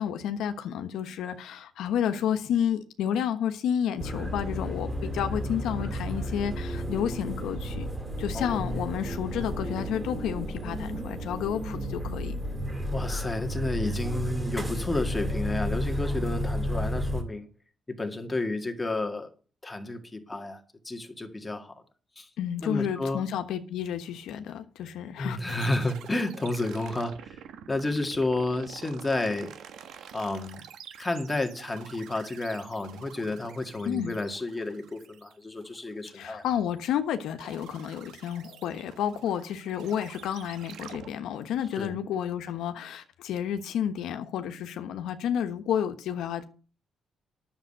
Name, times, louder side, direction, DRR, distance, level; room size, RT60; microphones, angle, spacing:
voice 1, 0.0-7.9 8.2-12.3 22.4-25.4 33.8-34.2 36.1-46.4, left 9 dB, 85° left, 1.2 m, -31 dB
sound 1, 4.0-17.2, equal, 15° right, 2.8 m, -32 dB
sound 2, 5.1-10.1, left 4 dB, 30° left, 2.3 m, -51 dB
voice 2, 8.3-8.9 12.9-17.5 18.0-19.3 19.6-21.8 22.2-22.3 22.6-23.2 25.2-27.4 27.7-29.5 30.1-30.6 31.0-36.4 41.8-42.0, left 2 dB, 15° left, 1.9 m, -31 dB
sound 3, 25.5-37.0 37.4-41.1, right 9 dB, 80° right, 1.4 m, -48 dB
10.5 x 7.3 x 6.6 m
cardioid pair, 145°, 0 cm